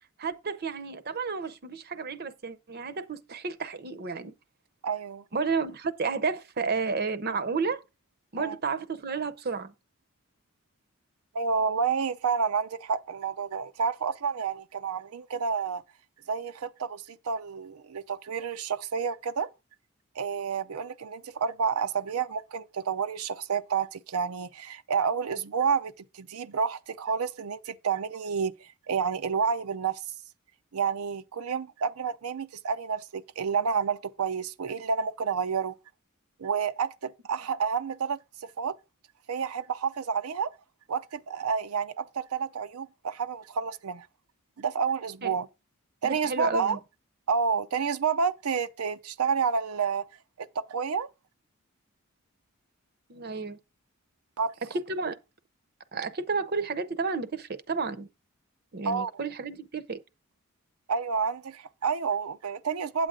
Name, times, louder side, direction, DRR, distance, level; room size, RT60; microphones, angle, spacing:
voice 1, 0.2-4.3 5.3-7.8 8.3-9.7 45.2-45.3 46.0-46.8 53.1-53.6 54.7-55.2 55.9-58.1 58.7-60.0, right 4 dB, 45° right, 0.7 m, -31 dB
voice 2, 4.8-5.2 8.4-8.6 11.3-15.8 16.3-19.5 20.2-30.0 30.7-35.7 36.4-38.7 39.3-40.5 40.9-44.1 44.6-45.5 46.0-46.8 47.3-50.1 50.4-51.1 54.4-54.5 58.9-59.1 60.9-63.1, right 6 dB, 85° right, 0.6 m, -29 dB
9.0 x 7.8 x 3.7 m
head